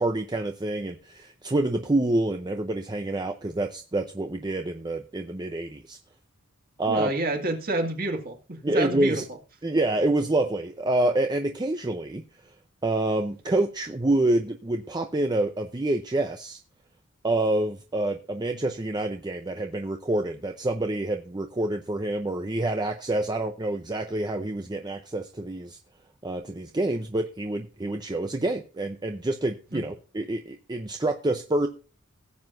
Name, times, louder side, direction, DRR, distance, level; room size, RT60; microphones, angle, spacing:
voice 1, 0.0-6.0 6.8-7.1 8.6-9.2 9.6-12.2 12.8-16.6 17.2-25.8 26.2-31.7, right 2 dB, 20° right, 5 dB, 0.6 m, -27 dB
voice 2, 6.9-9.2 29.7-29.8, right 2 dB, 45° right, 3 dB, 2.0 m, -28 dB
16.5 x 7.7 x 2.6 m, 0.35 s
head